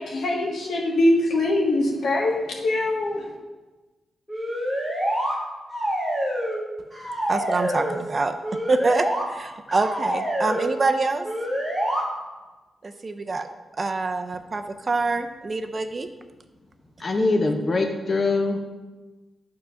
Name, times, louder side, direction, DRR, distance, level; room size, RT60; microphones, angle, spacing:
voice 1, 0.0-2.3 2.6-3.2, left 1 dB, 75° left, -1 dB, 1.3 m, -22 dB
sound 1, 4.3-5.4 5.7-6.6 6.9-8.0 8.4-9.2 9.7-10.7 11.2-12.0, equal, 5° right, 1.7 m, -27 dB
voice 2, 7.3-8.3 8.7-11.3 12.8-13.5 13.8-16.1, right 3 dB, 35° right, 7 dB, 0.4 m, -25 dB
voice 3, 17.0-18.6, left 3 dB, 35° left, 5 dB, 0.7 m, -23 dB
7.1 x 3.8 x 5.6 m, 1.2 s
wide cardioid pair, 120°, 0 cm